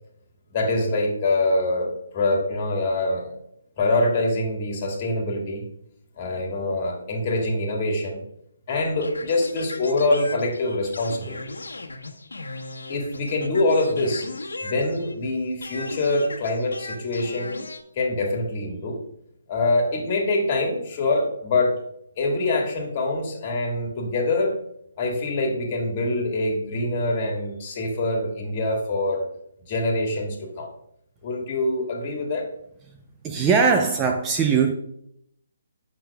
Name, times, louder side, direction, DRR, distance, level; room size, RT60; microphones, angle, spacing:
voice 1, 0.5-1.9 2.1-3.3 3.8-5.7 6.2-8.2 8.7-11.4 12.9-14.3 14.6-17.6 17.9-19.0 19.5-21.7 22.2-24.6 25.0-29.3 29.7-30.7 31.2-32.4, left 2 dB, 35° left, 1 dB, 1.8 m, -24 dB
sound 1, 9.0-15.3 15.6-17.8, left 2 dB, 75° left, 1.2 m, -37 dB
voice 2, 33.2-34.7, right 5 dB, 15° right, 4 dB, 0.5 m, -20 dB
8.0 x 6.2 x 2.3 m, 0.74 s
figure-of-eight pair, 145°, 0 cm